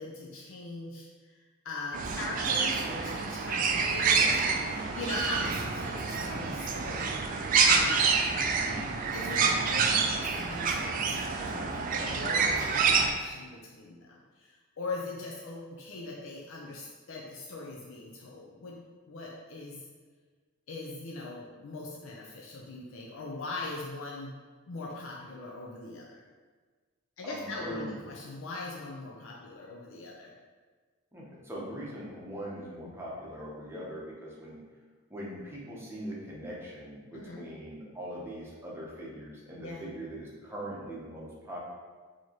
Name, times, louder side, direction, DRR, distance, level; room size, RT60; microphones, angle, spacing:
voice 1, 0.0-8.0 9.1-18.8 19.1-19.8 20.7-24.4 24.7-26.2 27.2-30.3 32.7-33.0 37.1-37.4 39.5-39.8, left 2 dB, 70° left, -3 dB, 0.5 m, -41 dB
sound 1, 1.9-13.1, right 5 dB, 40° right, 0.3 m, -27 dB
voice 2, 8.6-9.0 27.2-28.0 31.1-34.6 35.1-41.6, equal, 10° right, -5 dB, 0.8 m, -41 dB
4.6 x 2.9 x 2.9 m, 1.4 s
head